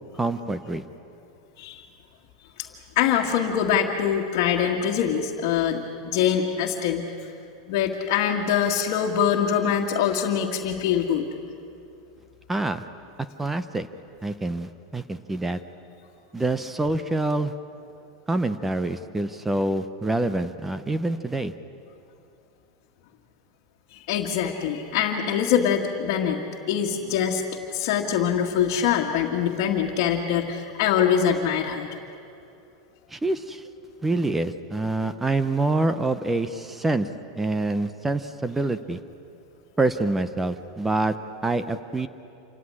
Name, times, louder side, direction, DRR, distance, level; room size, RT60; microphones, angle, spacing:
voice 1, 0.2-0.8 12.5-12.8 13.4-13.9 14.2-15.6 16.3-17.5 18.3-21.5 33.1-33.7 34.0-37.1 37.4-39.0 39.8-41.2 41.4-42.1, right 2 dB, 10° right, 11 dB, 0.7 m, -26 dB
voice 2, 3.0-7.3 7.7-11.2 23.9-26.4 26.7-27.4 27.7-31.9, left 8 dB, 50° left, -2 dB, 1.8 m, -24 dB
27.5 x 16.0 x 10.0 m, 2.7 s
supercardioid pair, 155°, 2 cm